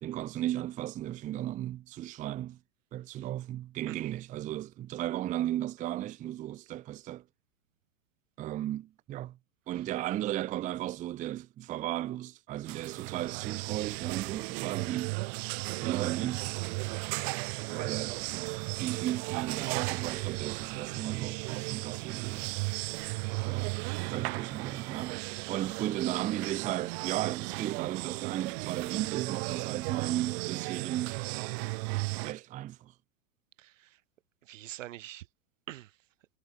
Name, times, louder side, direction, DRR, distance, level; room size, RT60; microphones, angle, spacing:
voice 1, 0.0-2.6 2.9-7.2 8.4-9.4 9.7-15.2 15.8-16.5 17.7-18.5 18.8-22.6 23.5-23.8 24.1-31.2 32.2-32.9, right 13 dB, 20° right, 0.5 m, -35 dB
sound 1, 12.6-32.3, right 32 dB, 55° right, 2.0 m, -35 dB
voice 2, 23.2-23.8 33.6-34.0 34.4-35.3 35.7-35.9, right 14 dB, 75° right, 1.5 m, -46 dB
hypercardioid pair, 120°, 38 cm